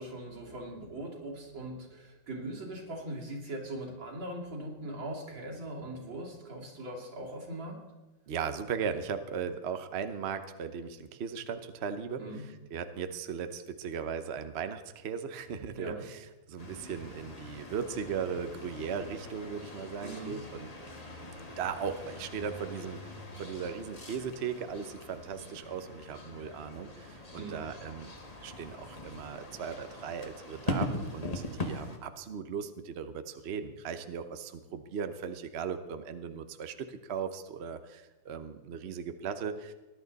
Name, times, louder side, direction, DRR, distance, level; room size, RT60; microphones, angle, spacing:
voice 1, 0.0-7.8 12.2-12.4 15.8-16.0 20.0-20.4 27.3-27.6, right 1 dB, 75° right, -3 dB, 3.6 m, -40 dB
voice 2, 8.3-20.7 21.6-28.1 28.4-39.7, right 6 dB, 55° right, 9 dB, 0.7 m, -37 dB
sound 1, 16.6-32.0, left 1 dB, 20° left, 1.2 m, -41 dB
19.5 x 11.0 x 4.1 m, 1.1 s
omnidirectional pair, 2.1 m